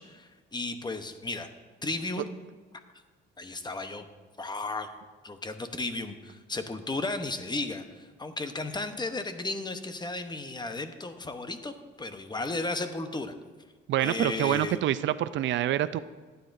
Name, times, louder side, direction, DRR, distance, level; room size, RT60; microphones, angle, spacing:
voice 1, 0.0-1.5 1.8-2.3 3.4-4.1 4.4-4.9 5.2-13.3 14.0-14.8, left 2 dB, 20° left, 8 dB, 0.9 m, -34 dB
voice 2, 13.9-16.0, right 12 dB, 70° right, 14 dB, 0.4 m, -26 dB
15.5 x 9.4 x 2.6 m, 1.4 s
cardioid pair, 90°, 20 cm